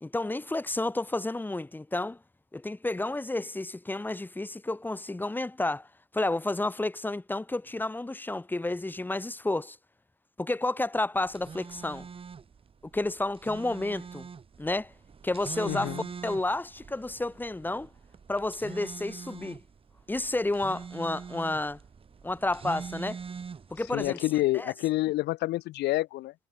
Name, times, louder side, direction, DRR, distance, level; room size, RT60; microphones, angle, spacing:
voice 1, 0.0-2.2 2.5-5.9 6.1-9.8 10.4-12.1 12.9-14.3 14.6-14.9 15.2-17.9 18.3-19.6 20.1-21.8 22.2-23.2 23.7-24.2 24.5-24.7, left 2 dB, 10° left, 2.4 m, -31 dB
sound 1, 11.2-24.1, right 6 dB, 35° right, 3.9 m, -44 dB
voice 2, 15.6-16.0 23.9-26.3, left 17 dB, 80° left, 2.2 m, -28 dB
cardioid pair, 110°, 17 cm